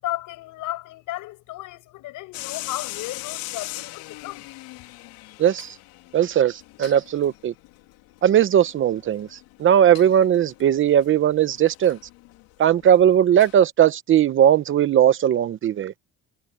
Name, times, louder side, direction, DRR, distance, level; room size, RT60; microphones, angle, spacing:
voice 1, 0.0-4.5, left 16 dB, 60° left, 6.7 m, -34 dB
sound 1, 2.3-13.5, left 19 dB, 80° left, 3.1 m, -40 dB
voice 2, 5.4-5.7 6.1-7.5 8.2-12.0 12.6-15.9, right 10 dB, 35° right, 0.8 m, -18 dB
cardioid pair, 150°, 35 cm